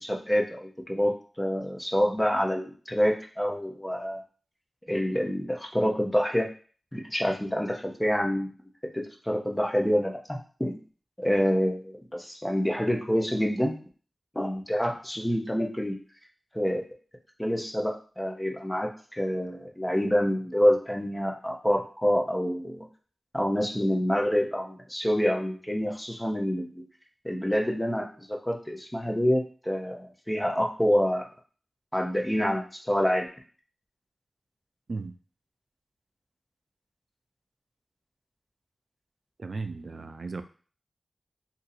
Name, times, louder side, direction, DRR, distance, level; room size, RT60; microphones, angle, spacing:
voice 1, 0.0-4.2 4.9-6.5 6.9-8.5 8.9-10.8 11.2-13.8 14.3-16.0 16.5-16.8 17.4-22.9 23.3-26.8 27.2-31.3 31.9-33.3, equal, 10° left, 1 dB, 0.6 m, -27 dB
voice 2, 39.4-40.4, right 3 dB, 65° right, 8 dB, 0.3 m, -35 dB
2.7 x 2.6 x 4.0 m, 0.40 s
wide cardioid pair, 75°, 0 cm